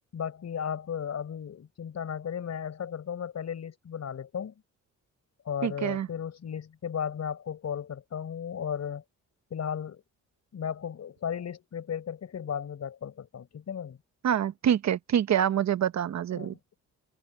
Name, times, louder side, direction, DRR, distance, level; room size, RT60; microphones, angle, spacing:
voice 1, 0.1-4.5 5.4-9.0 9.5-10.0 10.5-14.0 16.3-16.5, left 8 dB, 55° left, 4.8 m, -35 dB
voice 2, 5.6-6.1 14.2-16.5, right 9 dB, 60° right, 1.1 m, -26 dB
cardioid pair, 80°, 31 cm